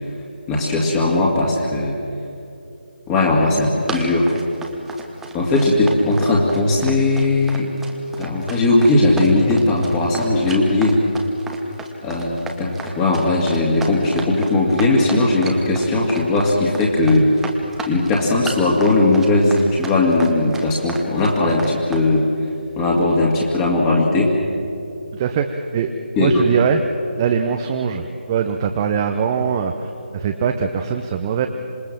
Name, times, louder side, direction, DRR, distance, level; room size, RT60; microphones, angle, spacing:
voice 1, 0.5-1.9 3.1-4.3 5.3-7.7 8.2-11.0 12.0-17.3 17.9-22.3 22.8-24.3 26.2-26.4, left 2 dB, 15° left, -3 dB, 2.3 m, -18 dB
Run, 3.3-22.1, right 3 dB, 5° right, 1.2 m, -33 dB
voice 2, 25.1-25.9 26.2-26.8 27.2-31.5, right 7 dB, 20° right, 5 dB, 0.9 m, -22 dB
26.5 x 20.5 x 7.6 m, 2.7 s
figure-of-eight pair, 155°, 6 cm